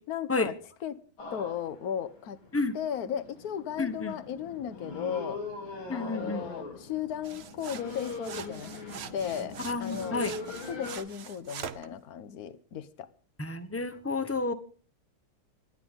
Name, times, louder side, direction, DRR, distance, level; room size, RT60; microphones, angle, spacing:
voice 1, 0.1-0.6 0.8-1.0 1.3-2.4 2.7-5.4 5.9-8.8 9.1-10.2 10.6-13.1, left 9 dB, 55° left, 1.3 m, -35 dB
sound 1, 1.2-11.0, left 3 dB, 75° left, 4.6 m, -42 dB
voice 2, 3.8-4.1 5.9-6.5 9.6-10.3 13.4-14.5, left 3 dB, 15° left, 0.5 m, -30 dB
sound 2, 7.2-11.9, right 7 dB, 55° right, 0.7 m, -43 dB
26.5 x 10.5 x 3.7 m
omnidirectional pair, 2.3 m